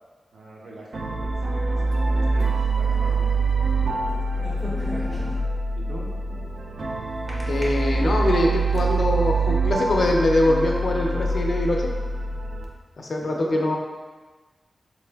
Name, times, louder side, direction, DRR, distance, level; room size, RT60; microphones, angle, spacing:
voice 1, 0.3-5.3 5.7-6.1 13.2-13.6, right 1 dB, 50° right, -4 dB, 0.8 m, -42 dB
sound 1, 0.9-12.6, right 3 dB, 75° right, 0.5 m, -24 dB
sound 2, 4.3-5.6 7.3-7.6 8.2-8.9, equal, 10° right, 0.7 m, -36 dB
voice 2, 7.5-11.8 13.0-13.8, left 1 dB, 55° left, 0 dB, 0.4 m, -23 dB
4.1 x 2.5 x 3.3 m, 1.3 s
wide cardioid pair, 145°, 0 cm